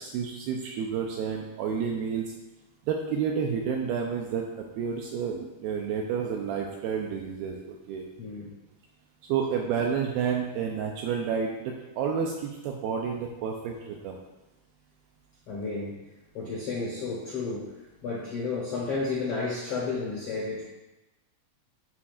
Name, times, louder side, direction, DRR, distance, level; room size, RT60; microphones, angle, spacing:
voice 1, 0.0-2.3 2.9-8.1 9.3-14.2, right 6 dB, 80° right, 0 dB, 2.2 m, -30 dB
voice 2, 8.2-8.5 15.5-16.0 16.3-20.6, left 4 dB, 80° left, -5 dB, 1.3 m, -32 dB
11.0 x 4.3 x 2.5 m, 1.0 s
omnidirectional pair, 4.8 m